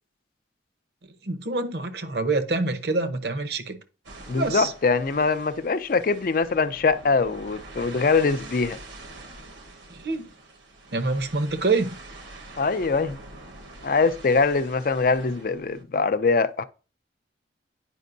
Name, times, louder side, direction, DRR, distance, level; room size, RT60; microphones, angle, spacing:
voice 1, 1.2-3.8 4.4-4.7 9.9-10.3 10.9-11.9, right 3 dB, 60° right, 0.8 m, -26 dB
sound 1, 4.0-15.8, right 2 dB, 80° right, 1.2 m, -45 dB
voice 2, 4.3-8.8 12.6-13.2 13.8-16.6, left 4 dB, 50° left, 0.4 m, -23 dB
9.2 x 5.2 x 2.6 m
head